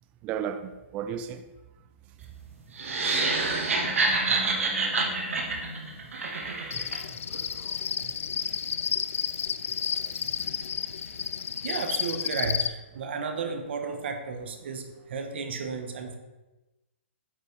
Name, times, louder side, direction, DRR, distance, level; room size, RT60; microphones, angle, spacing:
voice 1, 0.2-1.4 4.3-4.4 6.5-6.9 7.3-7.7 8.0-8.1, right 8 dB, 20° right, 0.3 m, -36 dB
Animal, 2.2-6.8, equal, 25° left, 2.4 m, -42 dB
sound 1, 2.8-7.0, right 3 dB, 85° right, 1.6 m, -27 dB
Cricket, 6.7-12.7, left 7 dB, 90° left, 0.4 m, -31 dB
voice 2, 11.6-16.2, right 5 dB, 55° right, 1.0 m, -33 dB
8.5 x 5.3 x 3.3 m
hypercardioid pair, 160°, 7 cm